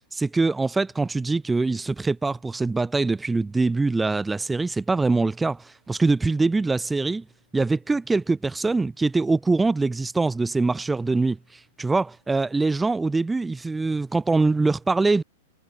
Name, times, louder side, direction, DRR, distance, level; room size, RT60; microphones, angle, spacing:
voice 1, 0.1-7.2 7.5-11.4 11.8-15.2, right 3 dB, 10° right, 1.4 m, -23 dB
hypercardioid pair, 120°, 0 cm